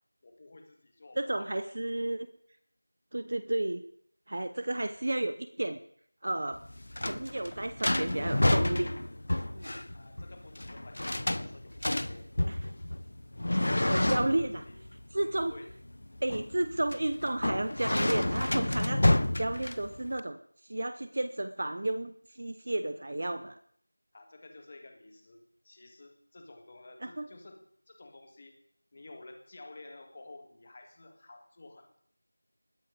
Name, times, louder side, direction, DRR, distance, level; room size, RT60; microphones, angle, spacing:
voice 1, 0.2-1.7 9.9-12.3 12.8-12.9 13.7-14.8 15.2-15.7 24.1-28.6 28.9-32.0, left 2 dB, 15° left, 5 dB, 1.8 m, -52 dB
voice 2, 1.2-2.3 3.1-3.8 4.3-5.8 6.2-6.6 7.0-8.9 9.5-9.8 12.5-12.7 13.9-14.6 15.1-15.5 16.2-20.4 20.7-23.6 27.0-27.3, right 1 dB, 30° right, 10 dB, 0.8 m, -32 dB
sound 1, 6.5-20.2, left 1 dB, 45° left, 0.7 m, -30 dB
20.0 x 15.5 x 4.0 m, 0.65 s
figure-of-eight pair, 180°, 0 cm